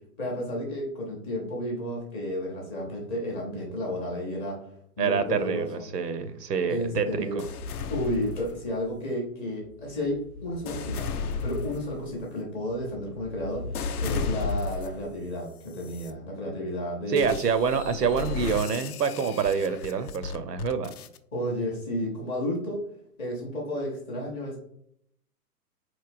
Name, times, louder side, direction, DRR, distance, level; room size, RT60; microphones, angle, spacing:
voice 1, 0.2-4.6 5.0-5.9 6.7-7.4 7.9-11.1 11.4-17.3 21.3-22.8 23.2-24.6, left 1 dB, 15° left, -3 dB, 0.5 m, -32 dB
voice 2, 5.0-7.4 17.1-20.9, right 6 dB, 80° right, 11 dB, 0.6 m, -27 dB
sound 1, 7.4-9.0 9.6-15.1 15.7-16.1 17.2-21.2, left 4 dB, 65° left, 0.5 m, -34 dB
4.1 x 3.1 x 2.4 m, 0.68 s
figure-of-eight pair, 115°, 48 cm